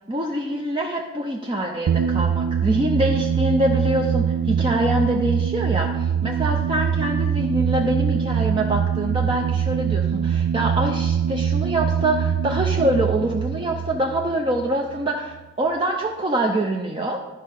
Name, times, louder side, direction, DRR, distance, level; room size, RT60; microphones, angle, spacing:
voice 1, 0.1-17.2, right 1 dB, 20° right, 1 dB, 0.5 m, -24 dB
sound 1, 1.9-15.1, right 8 dB, 85° right, 0.3 m, -23 dB
11.5 x 5.4 x 5.3 m, 1.2 s
head